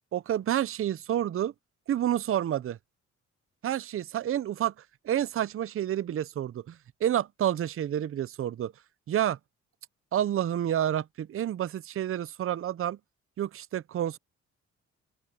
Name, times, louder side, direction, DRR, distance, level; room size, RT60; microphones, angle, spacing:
voice 1, 0.1-1.5 1.9-2.8 3.6-4.7 5.1-8.7 9.1-9.4 10.1-13.0 13.4-14.2, right 11 dB, 45° right, 0.6 m, -29 dB
open air
cardioid pair, 90°, 30 cm